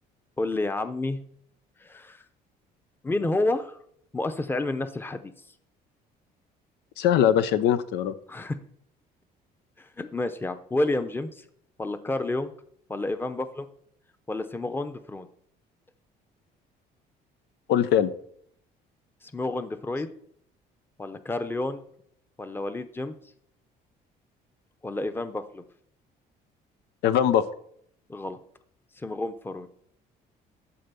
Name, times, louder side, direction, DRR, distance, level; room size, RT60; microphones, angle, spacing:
voice 1, 0.4-1.2 1.8-2.2 3.0-3.8 4.1-5.3 8.3-8.6 9.8-11.4 11.8-12.5 12.9-13.7 14.3-15.3 19.2-20.1 21.0-21.8 22.4-23.1 24.8-25.6 28.1-28.4 29.0-29.7, left 2 dB, 15° left, 10 dB, 0.8 m, -30 dB
voice 2, 7.0-8.2 17.7-18.1 27.0-27.4, left 10 dB, 85° left, 12 dB, 0.8 m, -21 dB
11.5 x 3.9 x 6.9 m, 0.67 s
cardioid pair, 110°, 17 cm